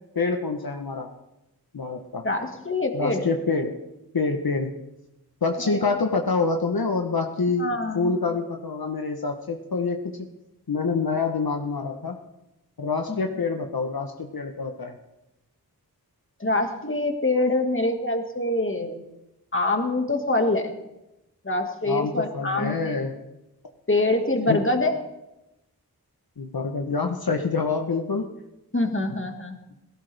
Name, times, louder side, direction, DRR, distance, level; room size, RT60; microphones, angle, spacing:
voice 1, 0.1-1.1 1.7-2.2 2.9-3.8 4.1-4.7 5.4-10.3 10.7-12.2 12.8-15.0 21.9-23.1 24.5-24.7 26.4-28.3, left 4 dB, 70° left, 4 dB, 1.1 m, -26 dB
voice 2, 2.2-3.3 5.6-5.8 7.6-8.1 16.4-18.9 19.5-20.7 21.4-22.8 23.9-24.9 28.7-29.6, left 2 dB, 30° left, 4 dB, 1.9 m, -25 dB
18.0 x 16.0 x 3.5 m, 0.94 s
wide cardioid pair, 60°, 38 cm